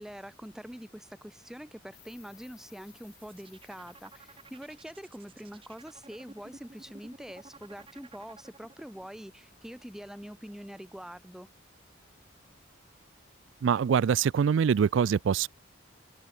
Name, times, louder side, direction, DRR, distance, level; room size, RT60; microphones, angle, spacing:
voice 1, 0.0-11.5, equal, ahead, 0.4 m, -45 dB
Insect, 1.9-8.7, left 16 dB, 65° left, 3.9 m, -63 dB
sound 1, 2.9-9.1, right 3 dB, 25° right, 0.9 m, -53 dB
voice 2, 13.6-15.5, right 7 dB, 75° right, 0.3 m, -24 dB
open air
head